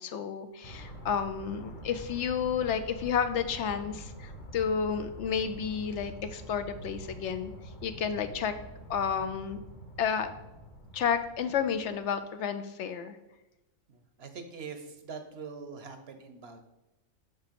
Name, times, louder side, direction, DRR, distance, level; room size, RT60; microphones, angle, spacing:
voice 1, 0.0-7.5 7.8-8.5 8.9-9.6 10.0-10.3 10.9-13.2, left 7 dB, 70° left, 9 dB, 0.8 m, -31 dB
sound 1, 0.6-12.3, equal, 40° left, 1.4 m, -46 dB
voice 2, 13.9-16.6, right 5 dB, 55° right, 7 dB, 0.9 m, -43 dB
6.0 x 5.7 x 5.1 m, 0.98 s
omnidirectional pair, 1.4 m